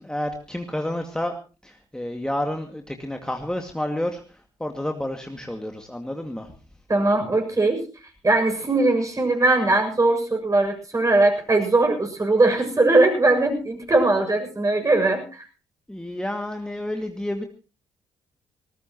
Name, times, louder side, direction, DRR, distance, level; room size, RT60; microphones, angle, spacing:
voice 1, 0.0-1.3 1.6-6.5 15.9-17.4, left 1 dB, 5° left, 4 dB, 2.2 m, -30 dB
voice 2, 6.9-7.8 8.2-15.4, right 2 dB, 25° right, 4 dB, 7.2 m, -20 dB
19.5 x 19.5 x 3.0 m, 0.35 s
hypercardioid pair, 45°, 12 cm